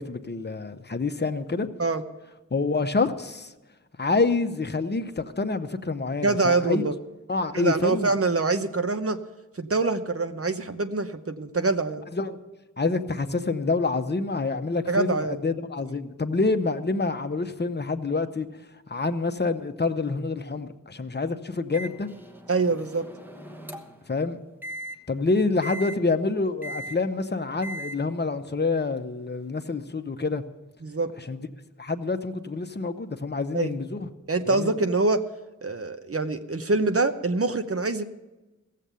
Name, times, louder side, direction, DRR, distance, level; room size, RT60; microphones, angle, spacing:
voice 1, 0.0-1.7 2.5-3.5 4.0-6.8 7.3-8.1 12.1-12.4 12.8-18.5 18.9-22.1 24.1-24.4 25.1-30.4 31.3-31.5 31.8-34.1 34.5-34.7, left 3 dB, 30° left, 0.8 m, -27 dB
voice 2, 6.2-6.9 7.5-9.2 9.6-12.0 14.9-15.4 22.5-23.1 30.8-31.1 33.5-33.8 34.3-35.2 35.6-38.0, right 3 dB, 45° right, 0.8 m, -25 dB
Microwave oven, 21.7-24.1 24.6-24.9 25.6-26.0 26.6-27.0 27.6-28.0, right 1 dB, 5° right, 1.1 m, -38 dB
16.0 x 7.5 x 6.9 m
wide cardioid pair, 55°, 32 cm